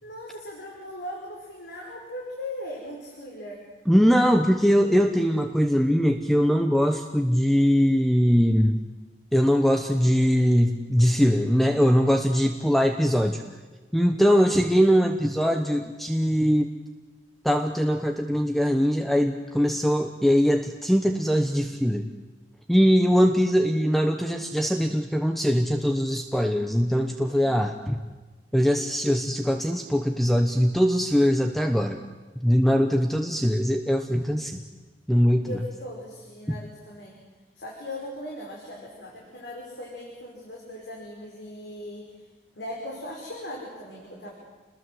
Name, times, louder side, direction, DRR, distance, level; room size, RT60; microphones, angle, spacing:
voice 1, 0.0-3.6 14.3-14.6 27.3-27.6 35.4-37.2 37.6-42.2 42.6-44.3, left 1 dB, 80° left, -2 dB, 5.4 m, -39 dB
voice 2, 3.9-8.8 9.3-13.4 13.9-16.7 17.4-22.1 22.7-28.0 28.5-32.0 32.4-34.6 35.1-35.6, equal, ahead, 5 dB, 1.0 m, -21 dB
28.5 x 21.0 x 7.8 m, 1.3 s
head